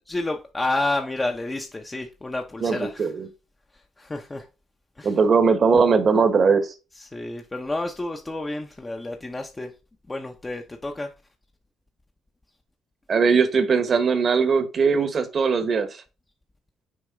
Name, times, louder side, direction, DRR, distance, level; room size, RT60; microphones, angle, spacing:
voice 1, 0.1-3.1 3.7-4.5 5.0-5.2 7.0-9.7 10.1-11.1, left 2 dB, 20° left, 3 dB, 0.8 m, -30 dB
voice 2, 2.6-3.3 5.0-6.7 13.1-15.9, right 5 dB, 50° right, 10 dB, 1.2 m, -20 dB
6.4 x 3.6 x 4.9 m, 0.30 s
cardioid pair, 90°, 0 cm